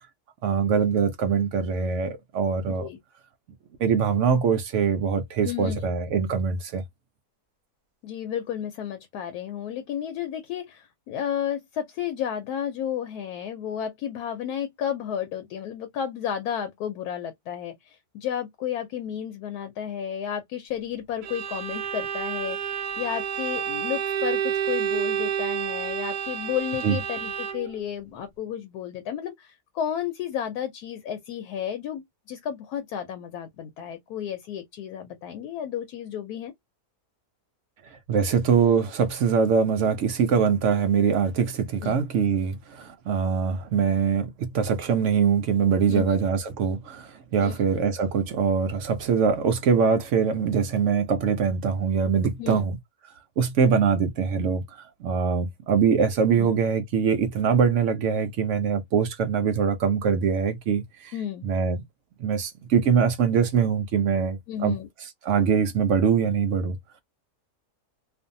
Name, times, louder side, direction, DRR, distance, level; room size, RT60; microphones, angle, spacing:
voice 1, 0.4-2.9 3.8-6.8 26.8-27.0 37.9-52.8 53.4-61.1 61.4-61.8 62.2-64.8 65.2-66.8, right 6 dB, 70° right, 0.7 m, -23 dB
voice 2, 2.7-3.0 5.4-5.8 8.0-36.5 41.8-42.0 45.9-46.1 47.4-47.6 52.4-52.7 56.4-56.5 61.1-61.5 64.5-64.9, left 9 dB, 75° left, 1.1 m, -32 dB
Bowed string instrument, 21.2-27.8, right 8 dB, 85° right, 1.2 m, -29 dB
2.5 x 2.5 x 2.6 m
omnidirectional pair, 1.7 m